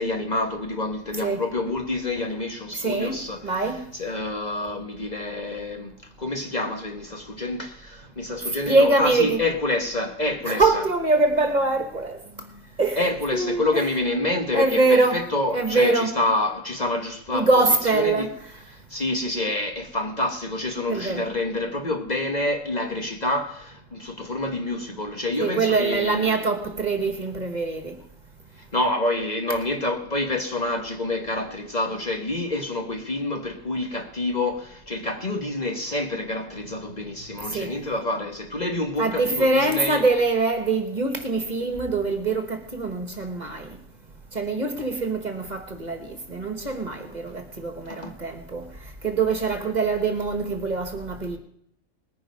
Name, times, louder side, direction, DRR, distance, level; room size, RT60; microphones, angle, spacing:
voice 1, 0.0-10.8 13.0-17.6 17.9-18.3 18.7-26.4 28.6-40.0 47.9-48.1, left 2 dB, 35° left, 1.3 m, -27 dB
voice 2, 2.7-3.1 3.4-3.8 8.7-9.4 10.4-12.5 12.8-13.0 13.3-13.9 14.5-15.2 15.5-16.1 17.3-18.3 20.8-21.2 25.4-28.0 37.5-37.7 39.0-43.7 44.3-48.6 49.0-51.4, right 3 dB, 35° right, 1.6 m, -23 dB
19.5 x 9.9 x 5.3 m
omnidirectional pair, 1.3 m